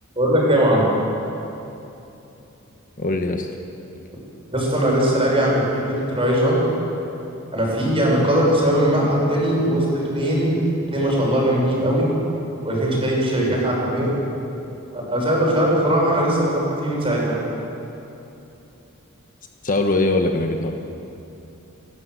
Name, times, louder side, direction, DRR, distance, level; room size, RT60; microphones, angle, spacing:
voice 1, 0.2-0.8 4.5-6.6 7.5-10.6 10.9-12.0 12.6-14.1 14.9-17.4, right 1 dB, 25° right, -3 dB, 6.3 m, -20 dB
voice 2, 3.0-3.5 13.5-13.6 19.6-20.7, left 2 dB, 40° left, 4 dB, 1.2 m, -21 dB
29.0 x 12.0 x 7.9 m, 2.9 s
head